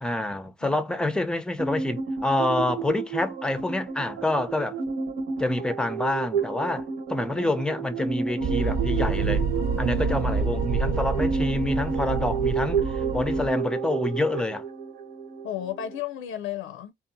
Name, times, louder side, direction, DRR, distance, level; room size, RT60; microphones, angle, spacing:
voice 1, 0.0-4.8 5.4-9.4 9.8-12.8 13.1-14.6, left 2 dB, 5° left, 0.5 m, -27 dB
voice 2, 0.6-1.2 15.4-16.9, left 11 dB, 90° left, 0.4 m, -34 dB
sound 1, 1.6-16.0, right 5 dB, 85° right, 1.5 m, -31 dB
sound 2, 8.4-13.5, right 5 dB, 50° right, 1.0 m, -27 dB
2.7 x 2.4 x 2.5 m
cardioid pair, 90°, 20 cm